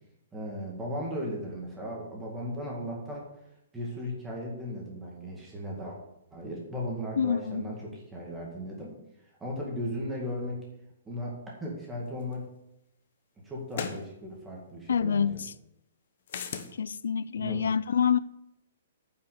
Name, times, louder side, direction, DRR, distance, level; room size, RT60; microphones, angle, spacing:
voice 1, 0.3-3.3 3.7-6.0 6.3-8.9 9.4-10.6 11.1-12.4 13.4-15.4 17.4-17.7, equal, 5° right, 1.9 m, -36 dB
voice 2, 7.2-7.6 14.9-15.5 16.8-18.2, left 7 dB, 85° left, 0.4 m, -27 dB
sound 1, 12.3-12.4 13.7-14.1 16.3-16.7, left 7 dB, 40° left, 1.0 m, -35 dB
9.5 x 5.7 x 7.9 m
hypercardioid pair, 180°, 0 cm